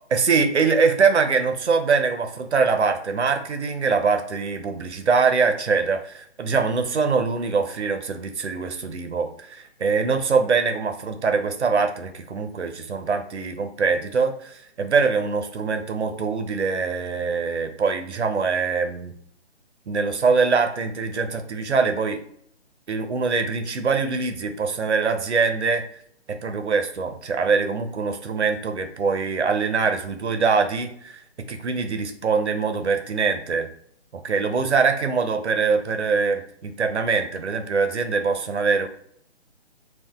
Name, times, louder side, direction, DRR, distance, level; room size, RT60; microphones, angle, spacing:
voice 1, 0.1-19.1 19.9-22.2 22.9-25.8 26.3-31.2 31.5-33.7 34.1-38.9, right 5 dB, 80° right, 7 dB, 0.7 m, -23 dB
5.6 x 2.4 x 2.3 m, 0.65 s
figure-of-eight pair, 145°, 34 cm